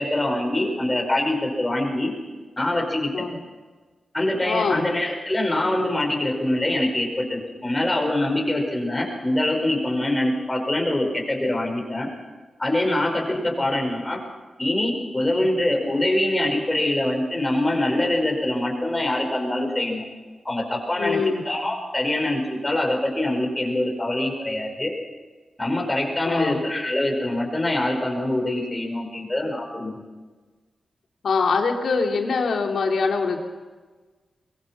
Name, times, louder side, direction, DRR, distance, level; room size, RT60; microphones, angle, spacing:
voice 1, 0.0-2.1 2.6-3.1 4.1-12.1 12.6-14.2 14.6-20.0 20.4-21.2 21.4-24.9 25.6-29.9, left 1 dB, 20° left, 2 dB, 5.0 m, -24 dB
voice 2, 4.4-4.9 13.5-13.7 15.4-15.5 21.0-21.4 26.2-26.6 31.2-33.4, left 4 dB, 80° left, 2 dB, 2.8 m, -24 dB
22.5 x 22.0 x 6.1 m, 1.4 s
wide cardioid pair, 120°, 0 cm